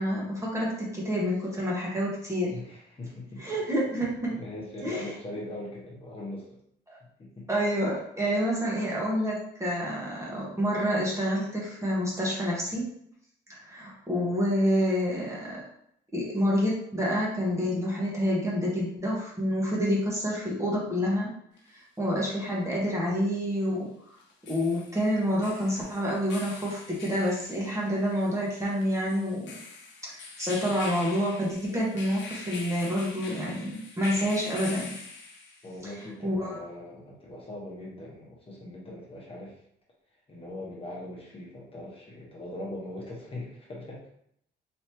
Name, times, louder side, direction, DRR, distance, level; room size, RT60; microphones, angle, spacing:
voice 1, 0.0-2.5 3.4-4.3 4.8-5.1 6.9-7.0 7.5-12.8 13.5-15.6 16.1-21.3 21.7-23.9 24.5-29.6 30.0-34.9 36.2-36.6, equal, 15° right, -5 dB, 1.2 m, -28 dB
voice 2, 2.5-3.7 4.3-6.5 7.2-7.5 14.1-14.3 35.6-39.6 40.3-44.1, left 1 dB, 30° left, -4 dB, 1.2 m, -41 dB
sound 1, 21.6-21.7 24.2-35.8, left 4 dB, 65° left, 0.8 m, -44 dB
3.5 x 2.9 x 2.9 m, 0.69 s
cardioid pair, 90°, 20 cm